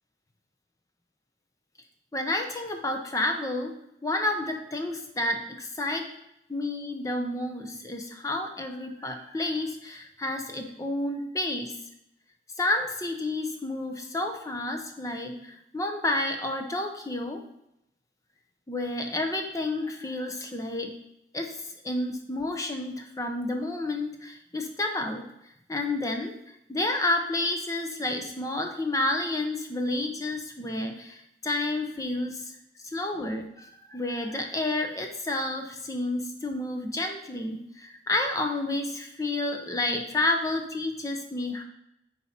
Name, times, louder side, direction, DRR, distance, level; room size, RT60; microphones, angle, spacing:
voice 1, 2.1-3.7 4.0-6.0 6.5-11.7 12.6-17.4 18.7-20.9 21.3-25.2 25.7-26.3 26.7-32.5 32.8-41.6, left 2 dB, 20° left, 4 dB, 0.7 m, -30 dB
10.0 x 4.2 x 4.2 m, 0.80 s
head